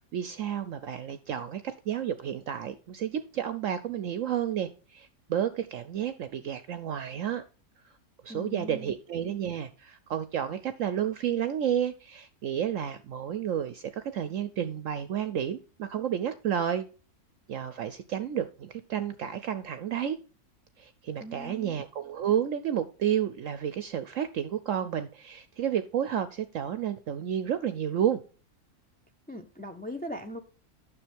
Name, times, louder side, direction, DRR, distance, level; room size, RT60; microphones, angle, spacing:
voice 1, 0.1-7.4 8.2-16.8 17.5-20.2 20.8-28.2, right 9 dB, 65° right, 0.9 m, -31 dB
voice 2, 8.3-9.0 21.2-21.8 29.3-30.4, left 1 dB, 15° left, 0.4 m, -39 dB
9.9 x 6.5 x 3.4 m
omnidirectional pair, 1.6 m